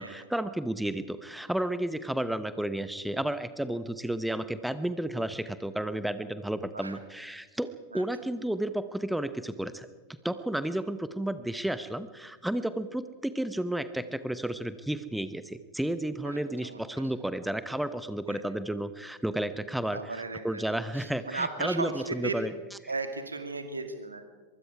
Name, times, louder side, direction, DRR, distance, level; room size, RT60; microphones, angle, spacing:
voice 1, 0.0-9.9 10.2-22.5 22.8-22.9, right 1 dB, 5° right, 13 dB, 0.9 m, -32 dB
voice 2, 16.2-16.8 18.3-18.4 19.9-22.4 22.9-24.2, right 3 dB, 80° right, 8 dB, 2.3 m, -36 dB
23.5 x 23.0 x 4.8 m, 1.3 s
figure-of-eight pair, 90°, 0 cm